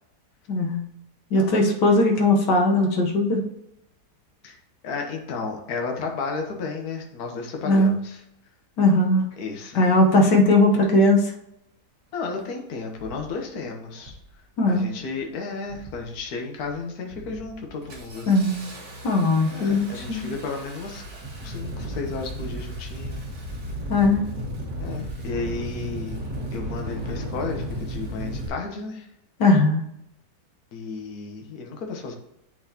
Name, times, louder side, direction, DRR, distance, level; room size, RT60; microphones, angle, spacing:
voice 1, 0.5-0.8 1.3-3.4 7.7-7.9 8.8-9.3 9.8-11.2 14.6-14.9 18.3-18.6 19.0-20.3 23.9-24.2 29.4-29.8, left 2 dB, 85° left, 1 dB, 1.7 m, -19 dB
voice 2, 4.8-8.2 9.4-9.8 12.1-14.2 14.7-18.3 19.4-21.0 21.4-23.2 24.8-26.2 26.5-29.1 30.7-32.1, left 4 dB, 65° left, 2 dB, 1.5 m, -33 dB
Engine starting, 12.1-12.2 13.0-13.3 14.0-14.3 14.7-15.2 15.6-16.2 16.6-16.8 17.1-28.5, equal, 85° right, 2.3 m, -35 dB
11.5 x 4.0 x 2.9 m, 0.80 s
omnidirectional pair, 1.8 m